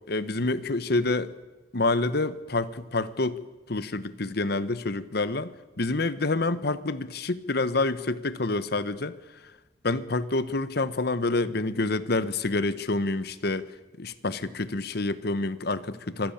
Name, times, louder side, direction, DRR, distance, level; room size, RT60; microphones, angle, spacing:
voice 1, 0.1-1.3 1.7-3.4 3.7-9.2 9.8-13.7 14.0-16.3, left 2 dB, 65° left, 14 dB, 1.1 m, -27 dB
25.0 x 16.0 x 8.8 m, 1.1 s
head